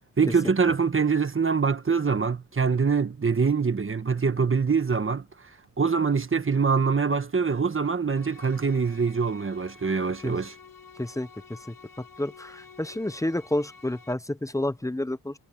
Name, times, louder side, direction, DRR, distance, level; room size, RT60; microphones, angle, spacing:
voice 1, 0.2-5.2 5.8-10.5, right 5 dB, 35° right, 1.3 m, -24 dB
sound 1, 8.1-14.1, left 5 dB, 65° left, 6.7 m, -50 dB
voice 2, 12.2-15.3, left 1 dB, 10° left, 0.7 m, -29 dB
wide cardioid pair, 100°, 38 cm